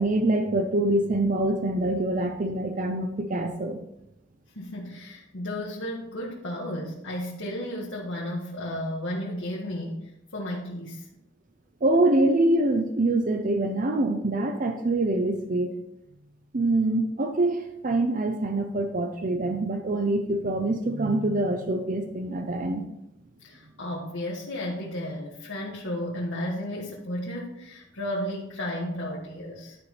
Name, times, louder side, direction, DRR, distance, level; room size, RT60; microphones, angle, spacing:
voice 1, 0.0-3.8 11.8-15.7 16.5-22.8, right 2 dB, 45° right, 6 dB, 0.6 m, -25 dB
voice 2, 4.5-11.1 23.4-29.8, left 1 dB, 75° left, -4 dB, 1.5 m, -33 dB
11.5 x 4.5 x 4.3 m, 0.88 s
head